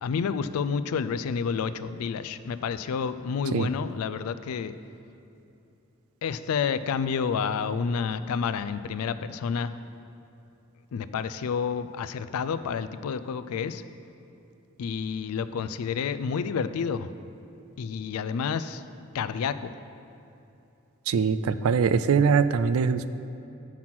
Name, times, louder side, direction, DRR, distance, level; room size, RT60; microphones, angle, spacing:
voice 1, 0.0-4.7 6.2-9.7 10.9-13.8 14.8-17.1 17.8-18.9 19.1-19.7, left 6 dB, 90° left, 13 dB, 0.3 m, -29 dB
voice 2, 21.1-23.1, right 6 dB, 75° right, 14 dB, 0.3 m, -22 dB
7.5 x 5.9 x 5.9 m, 2.8 s
head